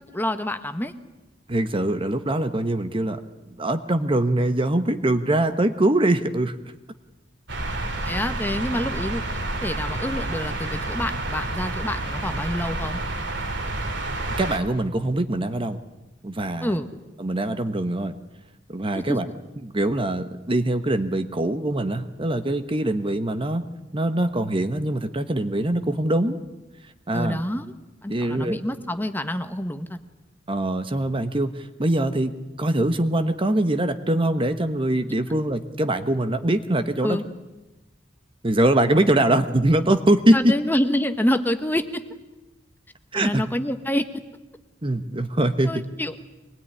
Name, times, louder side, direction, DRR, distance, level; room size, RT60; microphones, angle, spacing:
voice 1, 0.1-0.9 8.0-9.2 9.6-13.0 16.6-16.9 19.1-19.2 27.1-27.7 28.0-30.0 37.0-37.2 40.3-42.0 43.1-44.0 45.6-46.1, left 1 dB, 10° left, 8 dB, 1.3 m, -27 dB
voice 2, 1.5-3.2 3.6-6.5 14.4-15.8 16.2-16.8 17.2-18.1 18.7-19.3 19.6-23.6 23.9-26.4 27.1-27.4 28.1-28.6 30.5-37.2 38.4-40.5 43.1-43.4 44.8-45.8, right 1 dB, 30° right, 9 dB, 1.1 m, -23 dB
sound 1, 7.5-14.6, right 2 dB, 70° right, 3.0 m, -29 dB
24.0 x 20.5 x 9.9 m, 1.0 s
head